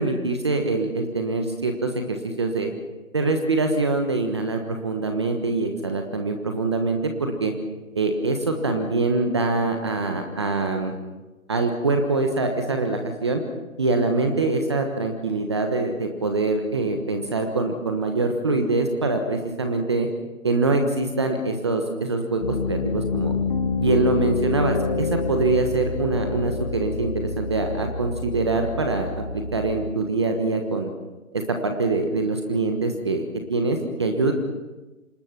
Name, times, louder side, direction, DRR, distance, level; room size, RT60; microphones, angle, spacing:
voice 1, 0.0-2.7 3.1-7.5 7.9-10.9 11.5-13.4 13.8-20.1 20.4-23.4 23.8-30.9 31.3-34.3, right 3 dB, 20° right, 4 dB, 1.3 m, -24 dB
Piano, 22.4-29.9, left 4 dB, 25° left, 1.6 m, -27 dB
27.0 x 19.5 x 6.0 m, 1.1 s
figure-of-eight pair, 165°, 42 cm